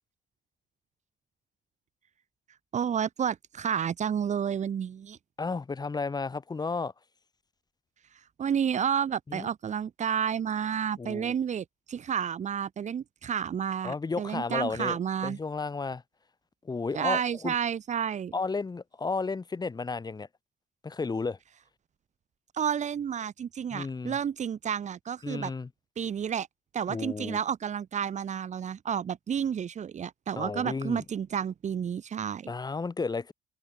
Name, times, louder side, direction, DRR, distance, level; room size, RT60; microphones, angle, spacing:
voice 1, 2.7-5.2 8.4-15.4 16.9-18.3 22.5-25.5 26.0-26.5 26.7-32.5, right 8 dB, 45° right, 3.7 m, -31 dB
voice 2, 5.4-6.9 9.3-9.5 11.0-11.4 13.8-16.0 16.6-17.5 18.3-20.3 20.8-21.4 23.7-24.2 25.2-25.7 26.9-27.4 30.4-31.0 32.5-33.3, left 4 dB, 25° left, 8.0 m, -33 dB
cardioid pair, 110°, 17 cm